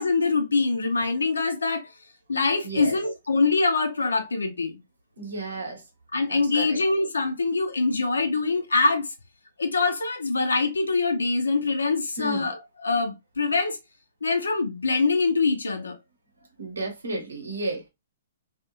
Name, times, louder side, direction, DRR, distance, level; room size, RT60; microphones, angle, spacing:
voice 1, 0.0-1.9 2.3-4.8 6.1-9.1 9.6-12.6 12.8-13.8 14.2-16.0, left 3 dB, 80° left, 0.7 m, -24 dB
voice 2, 2.6-2.9 5.2-5.8 6.3-6.8 12.2-12.5 16.6-17.9, right 2 dB, 80° right, 1.1 m, -32 dB
2.5 x 2.4 x 2.8 m
figure-of-eight pair, 120°, 0 cm